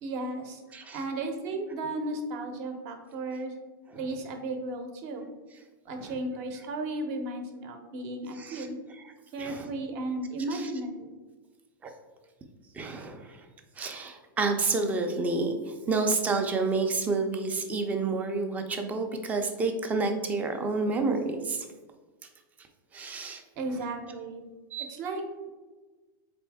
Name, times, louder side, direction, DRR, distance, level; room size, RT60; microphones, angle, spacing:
voice 1, 0.0-0.6 0.9-3.5 3.9-5.3 5.8-8.8 9.3-11.1 23.6-24.5 24.9-25.5, right 2 dB, 45° right, 5 dB, 0.7 m, -34 dB
voice 2, 8.3-8.7 9.4-9.7 10.5-10.7 11.8-11.9 12.7-13.5 13.8-21.7 22.9-23.4 24.7-25.0, right 3 dB, 15° right, 5 dB, 0.4 m, -29 dB
4.2 x 3.4 x 3.5 m, 1.3 s
supercardioid pair, 155°, 11 cm